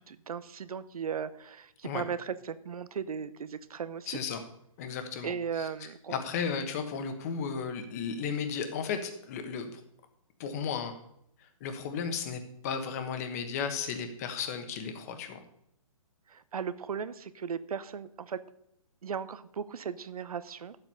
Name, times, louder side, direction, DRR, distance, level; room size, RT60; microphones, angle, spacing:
voice 1, 0.0-4.1 5.2-6.2 16.3-18.4 19.0-20.8, right 7 dB, 80° right, 15 dB, 0.8 m, -37 dB
voice 2, 4.1-4.4 4.8-5.7 6.1-9.8 10.4-10.9 11.4-15.4, left 6 dB, 25° left, 8 dB, 1.2 m, -34 dB
10.5 x 7.7 x 5.5 m, 0.74 s
hypercardioid pair, 165°, 19 cm